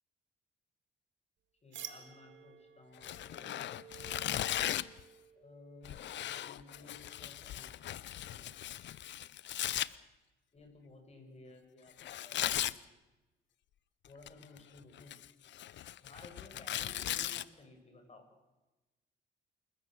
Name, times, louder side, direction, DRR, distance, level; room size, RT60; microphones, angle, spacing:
voice 1, 1.6-3.6 5.3-6.0 6.2-8.0 8.3-8.5 10.5-12.7 14.0-15.1 16.0-18.2, left 2 dB, 35° left, 5 dB, 6.7 m, -56 dB
sound 1, 1.7-7.3, right 9 dB, 70° right, 2.0 m, -53 dB
Tearing, 3.0-5.0 5.8-9.9 12.0-12.8 14.0-14.6 15.0-17.4, left 12 dB, 65° left, 0.7 m, -37 dB
28.5 x 14.0 x 8.0 m, 1.1 s
cardioid pair, 90°, 20 cm